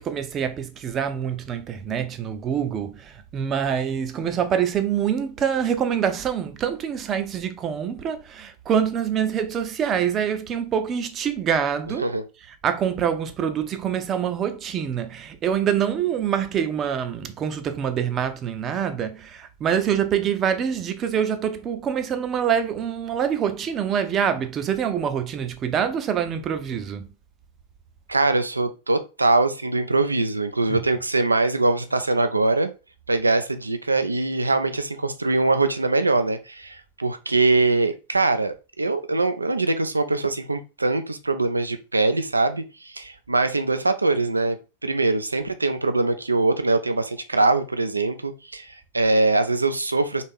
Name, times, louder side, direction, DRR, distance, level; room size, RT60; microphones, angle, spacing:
voice 1, 0.0-12.0 12.6-27.1 30.7-30.8, right 8 dB, 30° right, 0.6 m, -25 dB
voice 2, 28.1-32.7 33.1-44.6 44.8-50.2, right 3 dB, 80° right, 0.5 m, -22 dB
4.2 x 3.5 x 3.6 m
figure-of-eight pair, 90°, 0 cm